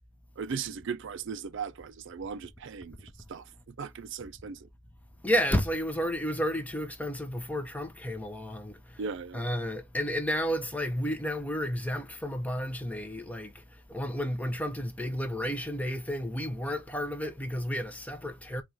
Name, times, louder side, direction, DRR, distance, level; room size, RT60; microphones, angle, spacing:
voice 1, 0.4-3.4 3.8-4.7 9.0-9.4, right 6 dB, 55° right, 0.4 m, -37 dB
voice 2, 5.2-9.0 9.3-18.6, equal, 5° left, 0.5 m, -32 dB
4.6 x 2.4 x 4.0 m
head